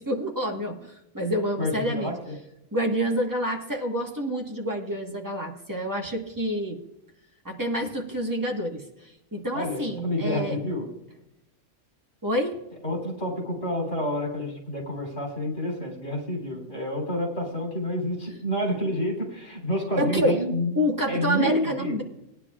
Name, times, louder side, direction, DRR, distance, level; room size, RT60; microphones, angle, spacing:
voice 1, 0.0-2.1 2.7-6.8 7.4-10.6 12.2-12.6 20.0-20.4 20.7-22.0, equal, 15° right, 0 dB, 1.5 m, -28 dB
voice 2, 1.6-2.3 9.5-10.9 12.8-20.7 21.1-22.0, left 1 dB, 70° left, -1 dB, 4.0 m, -29 dB
18.5 x 10.0 x 2.4 m, 0.86 s
omnidirectional pair, 1.3 m